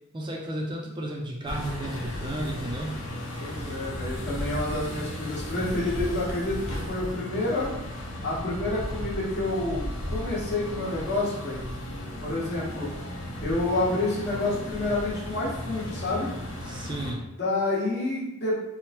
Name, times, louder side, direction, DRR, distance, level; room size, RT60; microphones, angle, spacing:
voice 1, 0.1-3.0 16.6-17.3, right 1 dB, 25° right, 0 dB, 0.3 m, -33 dB
sound 1, 1.5-17.1, left 1 dB, 85° left, 0.7 m, -35 dB
voice 2, 3.4-7.7 8.2-11.6 12.2-12.9 13.4-16.3 17.4-18.6, left 2 dB, 55° left, -6 dB, 1.0 m, -29 dB
3.2 x 2.0 x 2.8 m, 0.91 s
head